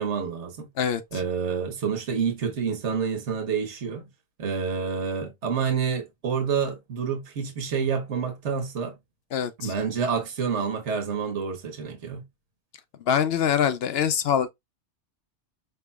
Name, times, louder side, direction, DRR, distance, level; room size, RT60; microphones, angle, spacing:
voice 1, 0.0-0.7 1.1-4.0 4.4-8.9 9.6-12.2, right 6 dB, 70° right, 1.5 m, -28 dB
voice 2, 0.8-1.2 9.3-9.7 13.1-14.5, left 8 dB, 65° left, 0.7 m, -24 dB
5.6 x 3.3 x 2.3 m
omnidirectional pair, 1.3 m